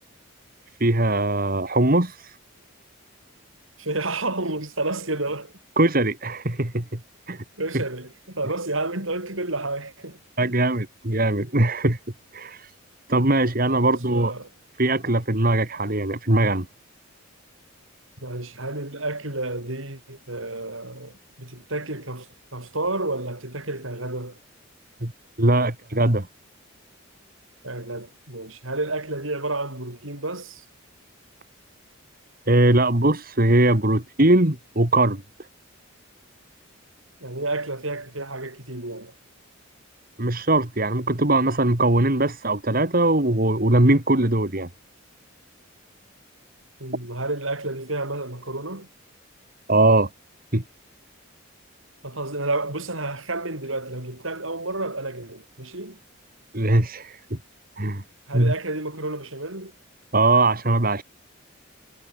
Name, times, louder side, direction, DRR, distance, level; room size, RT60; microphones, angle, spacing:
voice 1, 0.8-2.4 5.8-7.0 7.3-7.4 7.7-7.8 10.4-12.0 12.3-12.7 13.1-14.3 14.8-16.7 25.0-25.1 25.4-26.3 32.5-35.2 40.2-44.7 49.7-50.1 50.5-50.6 56.5-57.4 57.8-58.0 58.3-58.5 60.1-61.0, right 2 dB, 45° right, 2.4 m, -21 dB
voice 2, 3.8-5.5 7.6-10.5 13.7-14.5 18.2-24.4 27.6-30.6 37.2-39.1 46.8-48.9 52.0-56.0 58.3-59.7, right 2 dB, 70° right, 7.2 m, -30 dB
head